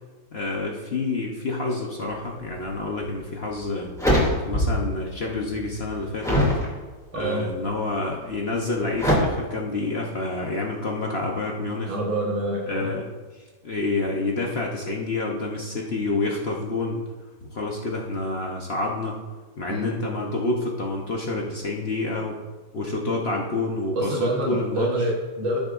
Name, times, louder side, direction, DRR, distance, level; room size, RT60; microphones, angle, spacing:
voice 1, 0.3-3.9 4.4-6.4 7.1-11.9 12.7-17.0 17.4-19.2 19.6-22.4 22.7-25.1, left 2 dB, 50° left, -1 dB, 0.8 m, -28 dB
sound 1, 3.1-3.2 3.6-4.9 5.3-6.6 7.2-7.7 9.0-9.2, equal, ahead, 2.4 m, -23 dB
voice 2, 7.1-7.5 11.9-12.9 19.7-19.9 24.0-25.6, right 1 dB, 90° right, -2 dB, 2.0 m, -26 dB
14.0 x 6.6 x 2.5 m, 1.3 s
omnidirectional pair, 2.1 m